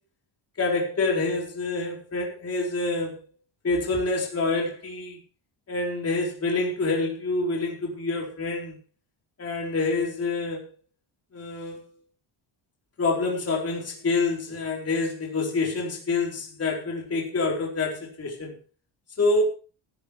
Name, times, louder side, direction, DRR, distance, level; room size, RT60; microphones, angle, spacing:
voice 1, 0.6-3.2 3.6-5.2 5.7-8.8 9.4-10.7 11.3-11.9 13.0-18.6 19.2-19.4, left 3 dB, 30° left, -1 dB, 4.1 m, -27 dB
14.0 x 13.5 x 3.3 m, 0.35 s
cardioid pair, 140°, 48 cm